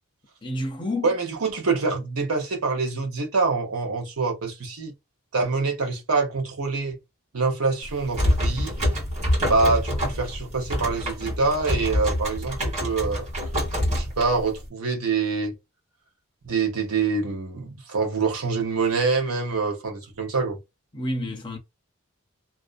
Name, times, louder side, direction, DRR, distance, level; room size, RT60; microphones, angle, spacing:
voice 1, 0.4-1.1 20.9-21.6, left 1 dB, 20° left, 0.5 m, -29 dB
voice 2, 1.0-4.9 5.3-7.0 7.3-8.8 9.4-13.3 13.9-15.5 16.4-20.6, right 4 dB, 75° right, 0.8 m, -25 dB
sound 1, 7.8-14.7, equal, 30° right, 1.1 m, -26 dB
2.6 x 2.1 x 2.5 m
head